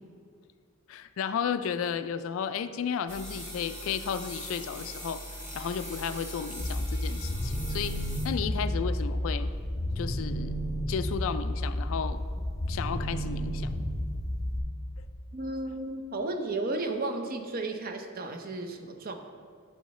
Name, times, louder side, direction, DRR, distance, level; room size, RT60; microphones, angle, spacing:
voice 1, 0.9-5.2 5.5-8.0 8.2-9.5 9.9-10.6 10.9-12.2 12.7-13.8, left 7 dB, 65° left, 12 dB, 0.3 m, -33 dB
sound 1, 3.1-8.7, equal, 10° right, 1.0 m, -41 dB
sound 2, 6.6-14.6, equal, 15° left, 0.7 m, -31 dB
voice 2, 15.3-19.2, right 2 dB, 40° right, 5 dB, 0.6 m, -33 dB
10.0 x 5.5 x 3.1 m, 2.1 s
head